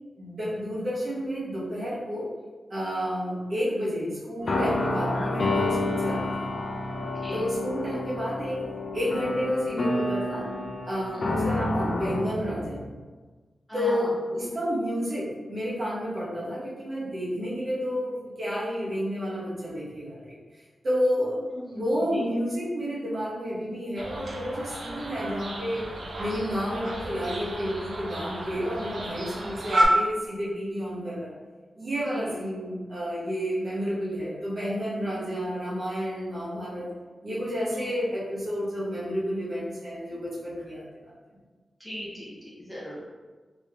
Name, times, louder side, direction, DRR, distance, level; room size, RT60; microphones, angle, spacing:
voice 1, 0.2-2.3 2.7-6.5 7.3-8.6 8.9-10.5 10.8-12.8 13.7-20.3 20.8-21.4 21.7-25.9 26.2-31.3 31.7-36.9 37.2-41.1, equal, 50° right, -8 dB, 1.2 m, -30 dB
sound 1, 4.4-12.9, left 2 dB, 55° left, 0.5 m, -29 dB
voice 2, 7.0-7.5 11.1-11.3 13.7-14.2 21.4-22.3 28.6-28.9 29.3-29.6 32.1-32.4 37.7-37.9 41.8-43.0, equal, 5° left, -7 dB, 0.8 m, -39 dB
sound 2, 24.0-29.8, right 1 dB, 70° right, 0.6 m, -32 dB
3.0 x 2.6 x 3.4 m, 1.3 s
wide cardioid pair, 135°, 0 cm